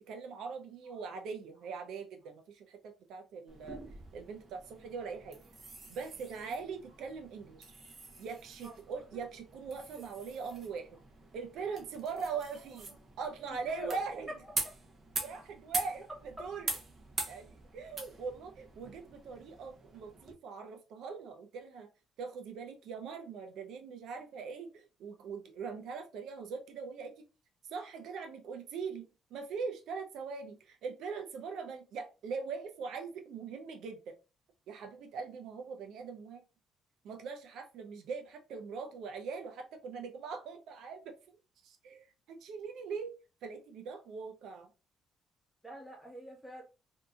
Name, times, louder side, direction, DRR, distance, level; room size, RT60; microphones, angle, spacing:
voice 1, 0.0-3.8 4.1-5.4 5.9-7.7 8.2-11.0 11.3-14.3 15.2-16.7 17.3-21.9 22.2-27.3 27.6-29.1 29.3-34.2 34.7-36.4 37.0-41.2 41.6-44.7, right 5 dB, 80° right, 4 dB, 0.5 m, -41 dB
sound 1, 3.5-20.3, right 3 dB, 35° right, 0.9 m, -44 dB
voice 2, 13.5-13.9 14.5-14.6 45.6-46.6, equal, ahead, -2 dB, 1.4 m, -46 dB
3.7 x 2.7 x 2.4 m, 0.32 s
cardioid pair, 135°, 0 cm